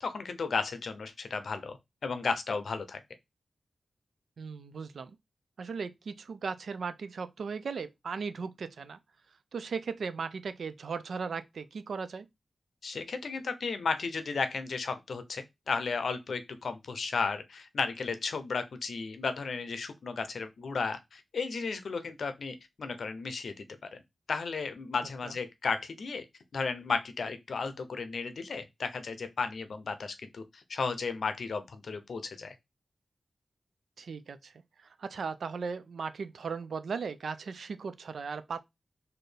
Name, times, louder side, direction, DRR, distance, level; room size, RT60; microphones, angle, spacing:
voice 1, 0.0-1.8 2.0-3.0 12.8-23.6 23.9-24.0 24.3-26.2 26.5-32.5, left 4 dB, 70° left, 0.6 m, -34 dB
voice 2, 4.4-5.2 5.6-9.0 9.5-12.3 25.2-25.3 34.0-34.5 35.0-38.6, right 5 dB, 80° right, 0.4 m, -37 dB
4.2 x 2.6 x 3.3 m
wide cardioid pair, 160°, 0 cm